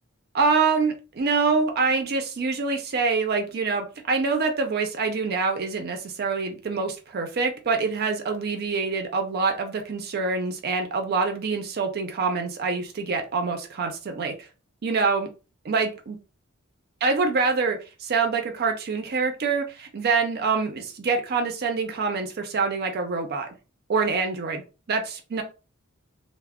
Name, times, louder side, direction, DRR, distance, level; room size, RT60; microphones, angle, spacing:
voice 1, 0.3-14.3 14.8-15.3 15.6-16.2 17.0-23.5 23.9-24.6 24.9-25.4, right 4 dB, 45° right, 5 dB, 0.4 m, -25 dB
2.2 x 2.0 x 3.4 m, 0.32 s
head